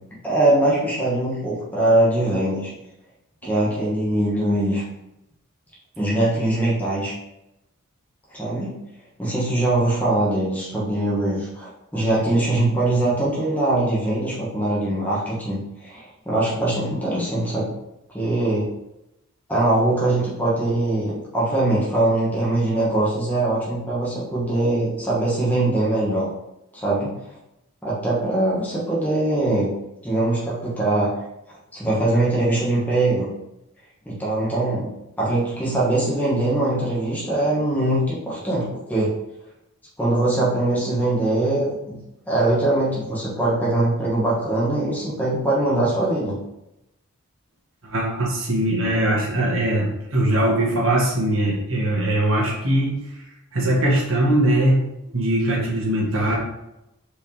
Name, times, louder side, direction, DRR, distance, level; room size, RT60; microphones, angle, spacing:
voice 1, 0.2-2.7 3.4-4.8 6.0-7.1 8.3-8.8 9.2-17.7 18.1-18.7 19.5-26.3 26.7-27.1 27.8-29.7 30.0-31.1 31.7-33.3 34.1-34.9 35.2-39.1 40.0-42.0 42.3-46.4, right 2 dB, 5° left, -7 dB, 1.8 m, -22 dB
voice 2, 47.8-53.1 53.5-54.8 55.1-56.4, right 1 dB, 60° right, -4 dB, 1.8 m, -21 dB
5.3 x 5.0 x 3.5 m, 0.89 s
head